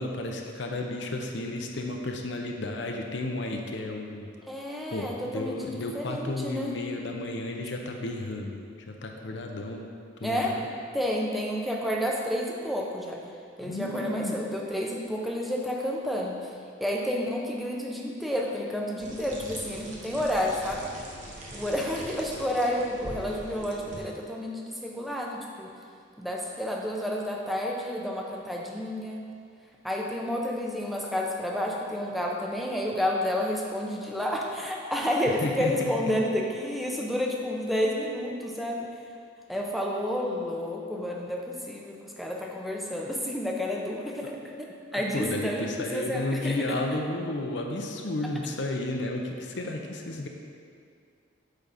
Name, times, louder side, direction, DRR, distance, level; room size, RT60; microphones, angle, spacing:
voice 1, 0.0-4.3 4.9-9.9 10.2-10.7 13.6-14.4 35.3-36.1 44.2-44.3 44.9-50.3, left 2 dB, 65° left, 2 dB, 0.6 m, -33 dB
voice 2, 4.5-6.7 10.2-10.6 10.9-13.2 13.6-16.5 16.8-20.9 21.5-25.7 26.2-29.3 29.8-38.9 39.5-44.7 44.9-45.7 45.9-46.7, equal, ahead, -1 dB, 0.6 m, -30 dB
sound 1, 19.0-24.0, right 1 dB, 40° right, 1.0 m, -42 dB
8.2 x 3.9 x 5.6 m, 2.3 s
head